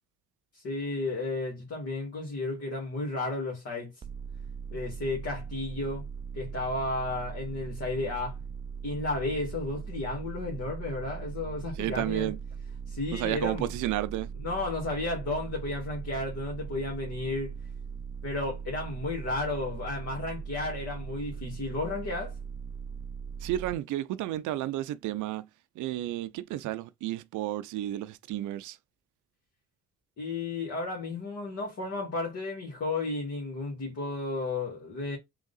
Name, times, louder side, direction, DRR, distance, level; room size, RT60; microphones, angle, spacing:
voice 1, 0.5-3.9 4.7-6.1 6.3-8.4 8.8-12.3 12.9-13.7 14.4-17.5 18.2-22.4 30.2-35.2, left 2 dB, 55° left, 1.9 m, -33 dB
sound 1, 4.0-23.7, right 6 dB, 20° right, 0.3 m, -40 dB
voice 2, 11.8-12.4 13.1-14.3 23.4-25.5 25.8-28.8, right 14 dB, 80° right, 0.5 m, -32 dB
3.7 x 2.9 x 4.0 m
cardioid pair, 90°, 30 cm